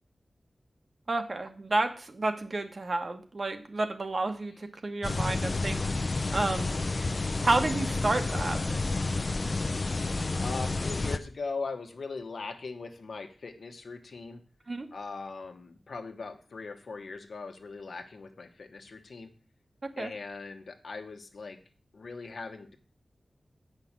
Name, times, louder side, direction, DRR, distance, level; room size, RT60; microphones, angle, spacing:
voice 1, 1.1-5.8 6.3-6.8 7.4-8.8 14.7-14.9 20.0-20.1, right 2 dB, 45° right, 6 dB, 1.2 m, -30 dB
sound 1, 5.0-11.2, left 3 dB, 40° left, 0.6 m, -30 dB
voice 2, 10.4-14.4 14.9-19.3 20.0-21.6 21.9-22.8, left 4 dB, 75° left, 5 dB, 1.2 m, -40 dB
8.1 x 5.8 x 7.3 m, 0.40 s
wide cardioid pair, 105°, 0 cm